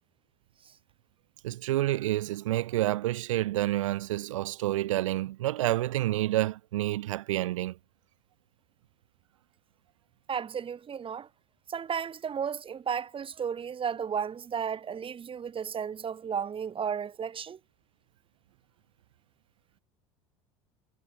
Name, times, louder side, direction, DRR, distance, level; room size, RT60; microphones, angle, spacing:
voice 1, 1.4-7.8, right 15 dB, 80° right, 3.5 m, -29 dB
voice 2, 10.3-11.3 11.7-17.6, right 7 dB, 35° right, 4.9 m, -33 dB
hypercardioid pair, 80°, 16 cm